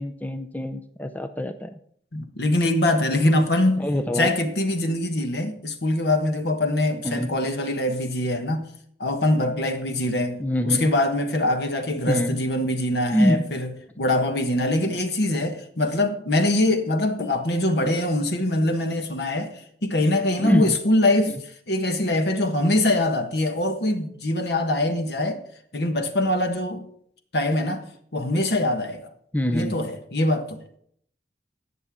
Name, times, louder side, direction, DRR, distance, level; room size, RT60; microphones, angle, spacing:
voice 1, 0.0-1.7 3.8-4.3 7.0-7.3 10.4-10.9 12.1-12.4 13.1-13.5 20.4-20.7 29.3-29.8, equal, 10° left, 0.5 m, -24 dB
voice 2, 2.1-3.9 4.1-8.7 9.0-21.4 21.7-25.4 25.7-26.9 27.3-27.9 28.1-29.1 29.5-30.6, left 1 dB, 75° left, 1.4 m, -23 dB
18.0 x 6.7 x 3.6 m
head